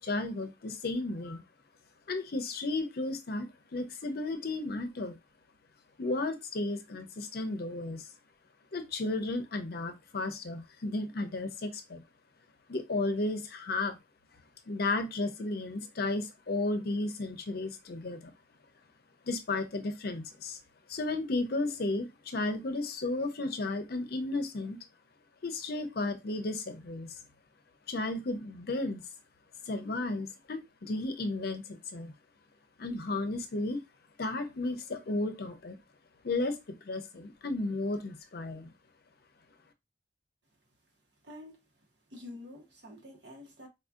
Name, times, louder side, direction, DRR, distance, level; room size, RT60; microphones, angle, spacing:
voice 1, 0.0-1.4 2.1-3.5 3.7-5.2 6.0-8.1 8.7-12.0 12.7-14.0 14.7-18.3 19.3-20.6 20.9-24.8 25.4-27.1 27.9-29.0 29.6-32.1 32.8-33.8 34.2-35.8 36.2-38.7, left 2 dB, 60° left, 0.6 m, -33 dB
voice 2, 41.2-41.6 42.1-43.7, left 1 dB, 80° right, 1.3 m, -48 dB
4.2 x 2.6 x 2.4 m
head